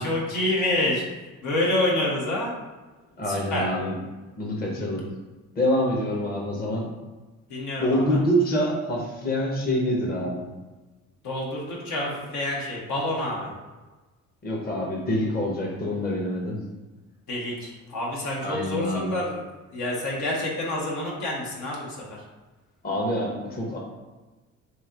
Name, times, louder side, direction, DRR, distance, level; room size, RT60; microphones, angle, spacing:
voice 1, 0.0-2.5 3.3-3.7 7.5-8.2 11.2-13.5 17.3-19.4 19.7-22.2, left 1 dB, 70° left, -3 dB, 1.2 m, -28 dB
voice 2, 3.2-4.0 4.4-5.1 5.6-6.9 7.8-10.5 14.4-16.6 18.4-19.1 22.8-23.8, equal, 30° left, -2 dB, 0.9 m, -26 dB
3.1 x 2.8 x 3.6 m, 1.2 s
supercardioid pair, 80°, 31 cm